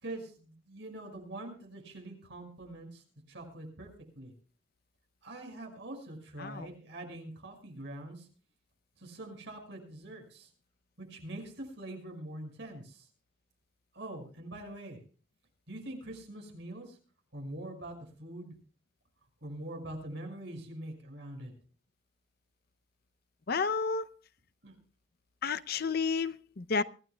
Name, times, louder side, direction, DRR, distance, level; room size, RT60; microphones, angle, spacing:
voice 1, 0.0-3.0 3.3-3.9 4.2-4.3 5.2-8.3 9.0-10.5 11.0-13.1 13.9-15.0 15.7-17.0 17.3-17.9 18.2-18.5 19.4-21.5 24.6-24.8, right 1 dB, 70° right, 5.7 m, -44 dB
voice 2, 23.5-24.1 25.4-26.8, left 5 dB, 55° left, 0.6 m, -31 dB
24.0 x 15.0 x 2.3 m
head